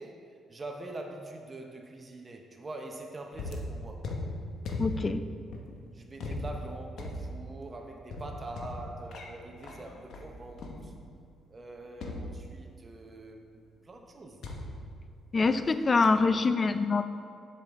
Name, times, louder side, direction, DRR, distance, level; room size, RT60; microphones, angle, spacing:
voice 1, 0.0-4.1 5.9-10.9 11.5-14.4 15.3-15.7 16.2-16.4, right 2 dB, 30° right, 2 dB, 0.7 m, -44 dB
sound 1, 3.3-11.3 12.0-13.0 14.4-15.7 16.0-16.4, left 1 dB, 70° left, 0.9 m, -39 dB
voice 2, 4.8-5.2 15.3-17.1, left 4 dB, 35° left, 11 dB, 0.4 m, -25 dB
7.4 x 5.7 x 3.6 m, 2.3 s
cardioid pair, 90°, 0 cm